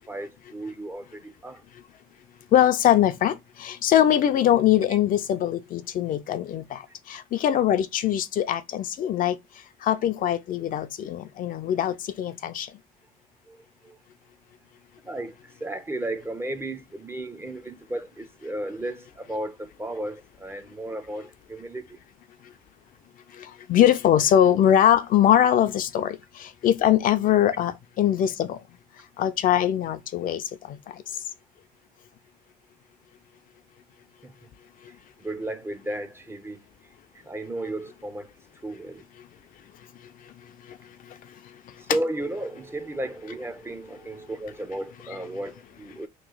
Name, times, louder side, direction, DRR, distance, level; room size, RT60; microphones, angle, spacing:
voice 1, 0.1-1.6 4.9-5.0 13.5-14.0 15.0-22.0 34.2-34.3 35.2-36.6 37.2-38.3 38.6-39.0 41.8-46.1, right 1 dB, 15° right, 0.5 m, -34 dB
voice 2, 2.5-6.8 7.1-9.4 9.8-12.7 23.7-27.7 28.0-28.6 29.2-30.4 30.7-30.8, left 11 dB, 55° left, 0.5 m, -22 dB
3.0 x 2.7 x 3.8 m
cardioid pair, 110°, 17 cm